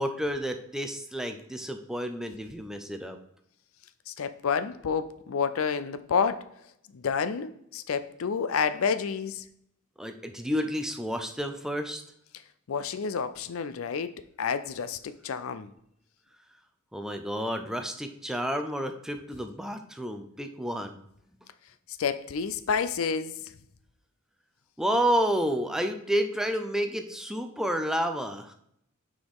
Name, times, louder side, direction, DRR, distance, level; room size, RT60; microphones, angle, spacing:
voice 1, 0.0-3.2 10.0-12.0 16.9-21.0 24.8-28.5, equal, 5° right, 6 dB, 0.5 m, -30 dB
voice 2, 4.1-6.5 6.9-9.4 12.7-14.1 14.4-15.7 22.0-23.5, left 6 dB, 85° left, 13 dB, 0.5 m, -29 dB
6.2 x 4.9 x 3.6 m, 0.74 s
head